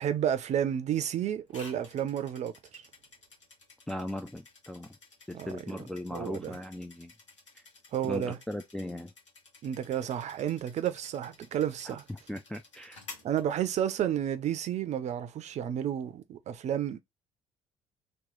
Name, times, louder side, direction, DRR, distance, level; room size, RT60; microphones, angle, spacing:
voice 1, 0.0-2.8 5.3-5.5 6.1-6.5 7.9-8.4 9.6-12.0 13.2-17.0, right 10 dB, 50° right, 0.6 m, -31 dB
sound 1, 1.5-14.2, left 3 dB, 90° left, 0.8 m, -53 dB
voice 2, 3.9-5.0 5.3-7.1 7.5-7.6 8.0-9.1 11.9-13.0, left 1 dB, 5° left, 0.4 m, -38 dB
3.0 x 2.3 x 3.7 m
hypercardioid pair, 50°, 15 cm